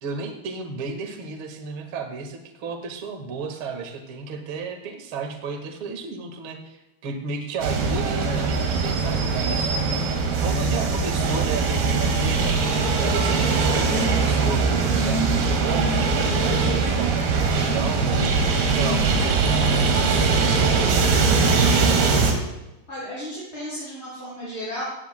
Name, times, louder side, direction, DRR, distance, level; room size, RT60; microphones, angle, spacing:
voice 1, 0.0-10.0 10.4-12.6 13.0-21.0, right 4 dB, 50° right, 4 dB, 1.7 m, -33 dB
sound 1, 7.6-22.3, right 4 dB, 70° right, 3.8 m, -21 dB
voice 2, 22.9-24.8, equal, 15° left, -9 dB, 5.8 m, -34 dB
17.5 x 16.5 x 2.2 m, 0.98 s
omnidirectional pair, 4.6 m